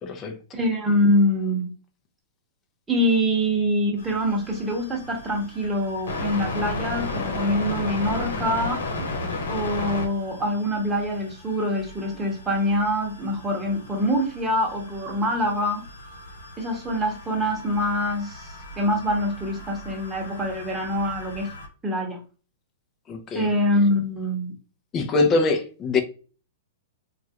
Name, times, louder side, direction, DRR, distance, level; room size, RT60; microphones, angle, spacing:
voice 1, 0.0-0.3 23.1-23.5 24.9-26.0, left 3 dB, 25° left, 0.6 m, -23 dB
voice 2, 0.5-1.7 2.9-8.8 9.5-15.8 16.6-21.5 21.8-22.2 23.3-24.5, equal, 10° right, 1.0 m, -24 dB
sound 1, 4.0-21.7, left 2 dB, 85° left, 1.0 m, -35 dB
3.1 x 2.4 x 2.8 m
hypercardioid pair, 135°, 0 cm